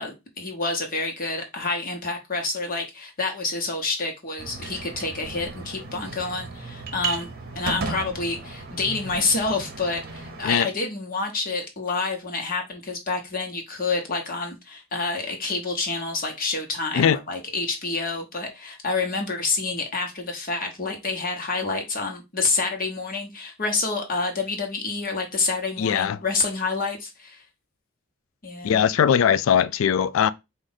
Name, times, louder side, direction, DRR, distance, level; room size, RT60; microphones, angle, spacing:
voice 1, 0.0-27.4 28.4-28.8, left 3 dB, 45° left, 1.2 m, -28 dB
sound 1, 4.4-10.5, right 4 dB, 50° right, 0.8 m, -35 dB
voice 2, 25.8-26.2 28.6-30.3, left 8 dB, 75° left, 0.3 m, -20 dB
4.8 x 2.5 x 4.0 m
head